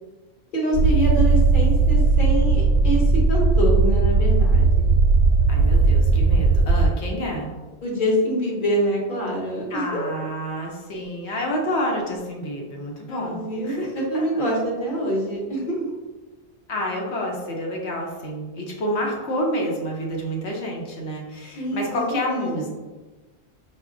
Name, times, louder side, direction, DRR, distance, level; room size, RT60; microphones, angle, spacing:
voice 1, 0.5-4.9 7.8-10.0 13.1-15.9 21.5-22.0 22.3-22.7, right 1 dB, 50° left, -3 dB, 1.0 m, -25 dB
sound 1, 0.7-6.9, right 3 dB, 80° right, 0.8 m, -17 dB
voice 2, 5.5-7.5 9.7-14.4 16.7-22.7, equal, 80° left, -1 dB, 1.0 m, -29 dB
4.7 x 2.5 x 2.5 m, 1.2 s
omnidirectional pair, 1.1 m